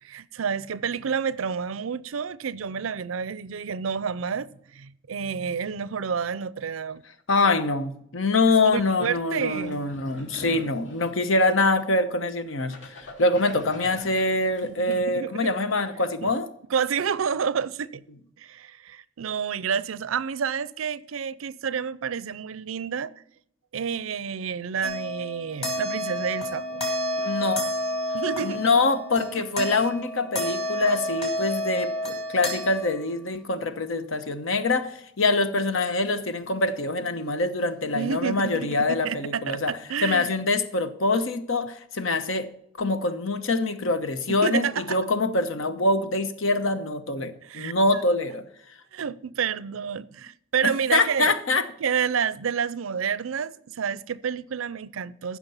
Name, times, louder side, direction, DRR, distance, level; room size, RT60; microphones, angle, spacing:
voice 1, 0.0-7.0 8.7-9.8 14.6-15.5 16.2-16.3 16.7-18.0 18.4-23.1 23.7-26.8 28.1-28.6 29.6-29.8 37.9-40.3 44.3-45.0 47.4-48.0 48.9-51.3 51.8-55.4, right 7 dB, 90° right, 0.5 m, -29 dB
voice 2, 7.3-16.5 27.2-27.6 28.4-39.7 40.0-42.5 42.8-48.4 50.6-51.7, left 2 dB, 80° left, 1.0 m, -24 dB
sound 1, 9.0-12.0 12.5-14.7, left 1 dB, 60° left, 3.3 m, -43 dB
sound 2, 24.8-33.1, left 1 dB, 30° left, 3.2 m, -30 dB
15.0 x 6.1 x 5.5 m
head